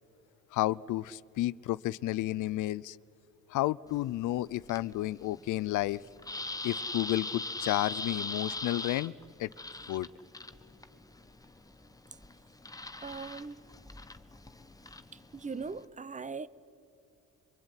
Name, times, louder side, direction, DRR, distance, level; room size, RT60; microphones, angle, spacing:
voice 1, 0.5-3.0 3.5-6.0 6.6-9.1 9.4-9.5 9.9-10.1, left 16 dB, 80° left, 0.5 m, -31 dB
sound 1, 3.9-15.8, left 2 dB, 10° left, 1.1 m, -42 dB
voice 2, 13.0-13.6 15.3-16.5, right 4 dB, 25° right, 0.7 m, -39 dB
24.5 x 23.0 x 9.7 m
cardioid pair, 90°, 30 cm